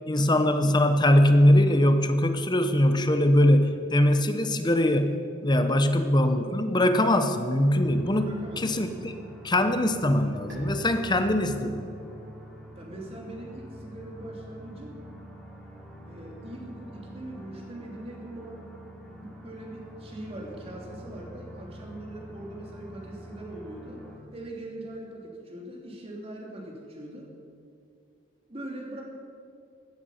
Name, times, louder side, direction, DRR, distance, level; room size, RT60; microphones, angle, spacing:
voice 1, 0.1-8.3 8.6-9.1 9.4-11.9, left 1 dB, 20° left, 8 dB, 0.9 m, -22 dB
sound 1, 7.7-24.2, equal, ahead, 3.0 m, -46 dB
voice 2, 8.2-8.7 12.8-15.0 16.1-18.7 19.1-24.0 24.3-27.3 28.5-29.0, right 1 dB, 30° right, -1 dB, 2.8 m, -41 dB
Bowed string instrument, 10.5-16.1, equal, 60° right, 3.3 m, -49 dB
15.5 x 12.5 x 5.6 m, 2.4 s
head